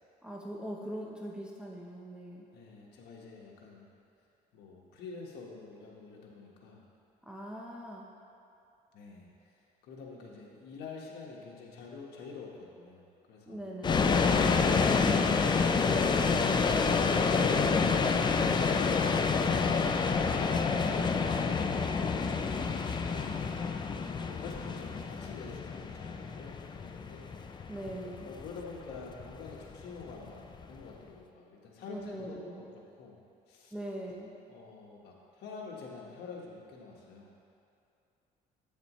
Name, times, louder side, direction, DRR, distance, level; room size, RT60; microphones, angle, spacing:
voice 1, 0.2-2.5 7.2-8.0 13.5-14.2 17.2-17.6 20.8-21.2 27.7-28.3 31.9-32.6 33.7-34.3, right 1 dB, 5° right, -3 dB, 0.8 m, -41 dB
voice 2, 2.5-3.9 4.5-6.8 8.9-9.6 9.8-13.6 21.1-27.2 28.2-30.4 30.7-32.7 33.0-33.2 33.5-33.7 34.5-37.3, left 4 dB, 75° left, -2 dB, 1.4 m, -48 dB
sound 1, 13.8-30.8, left 5 dB, 25° left, 0.4 m, -28 dB
8.4 x 7.3 x 3.1 m, 2.6 s
cardioid pair, 110°, 17 cm